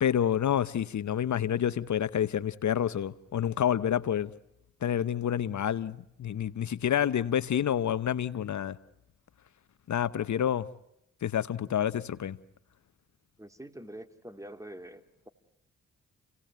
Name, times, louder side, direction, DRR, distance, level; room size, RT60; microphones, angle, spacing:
voice 1, 0.0-4.3 4.8-8.8 9.9-10.6 11.2-12.4, left 9 dB, 65° left, 0.9 m, -28 dB
voice 2, 13.4-15.3, right 1 dB, 10° right, 3.0 m, -45 dB
29.5 x 18.5 x 9.1 m
supercardioid pair, 50°, 32 cm